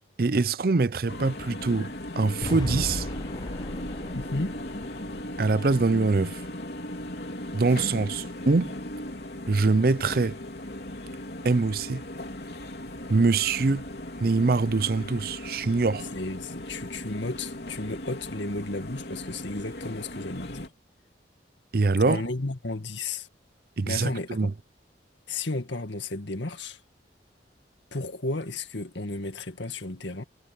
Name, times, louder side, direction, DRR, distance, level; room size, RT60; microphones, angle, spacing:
voice 1, 0.2-3.1 5.4-6.4 7.5-8.7 9.5-10.4 11.4-12.0 13.1-13.8 14.2-16.1 21.7-22.2 23.8-24.5, right 3 dB, 50° right, 0.5 m, -24 dB
sound 1, 1.1-20.7, left 1 dB, 60° left, 3.5 m, -38 dB
sound 2, 2.4-6.6, left 2 dB, 20° left, 0.5 m, -37 dB
voice 2, 4.1-4.6 16.1-20.7 22.1-23.3 23.8-24.5 25.3-26.8 27.9-30.2, left 2 dB, 80° left, 2.1 m, -33 dB
head